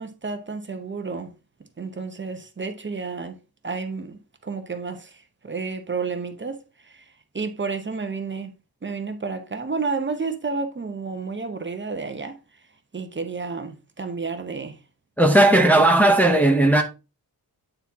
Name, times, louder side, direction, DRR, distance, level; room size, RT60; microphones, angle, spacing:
voice 1, 0.0-1.3 1.8-3.3 3.6-7.0 7.3-8.5 8.8-12.4 12.9-14.8 15.5-15.9, right 4 dB, 30° right, 0.9 m, -31 dB
voice 2, 15.2-16.8, right 1 dB, 5° left, 0.7 m, -16 dB
8.9 x 4.3 x 3.5 m
wide cardioid pair, 160°, 37 cm